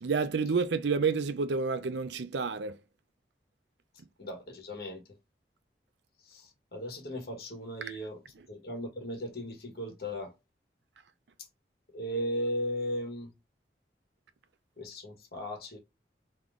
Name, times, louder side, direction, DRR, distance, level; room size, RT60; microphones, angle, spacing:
voice 1, 0.0-2.8, right 5 dB, 85° right, 0.5 m, -29 dB
voice 2, 4.2-5.0 6.3-6.4 6.7-8.2 8.5-10.3 11.9-13.3 14.8-15.8, equal, 60° left, 1.5 m, -36 dB
3.8 x 3.0 x 3.5 m
head